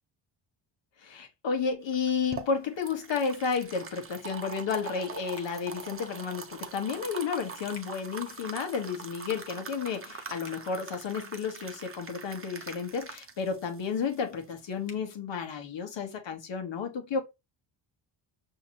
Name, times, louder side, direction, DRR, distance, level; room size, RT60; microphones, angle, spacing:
voice 1, 1.0-17.2, left 5 dB, 60° left, 1.3 m, -32 dB
sound 1, 1.9-14.9, right 5 dB, 25° right, 0.8 m, -43 dB
sound 2, 5.3-5.6 7.7-7.9 10.4-10.6 12.6-12.8 14.8-15.0, left 5 dB, 85° left, 1.5 m, -49 dB
5.6 x 2.9 x 2.9 m
cardioid pair, 85°, 49 cm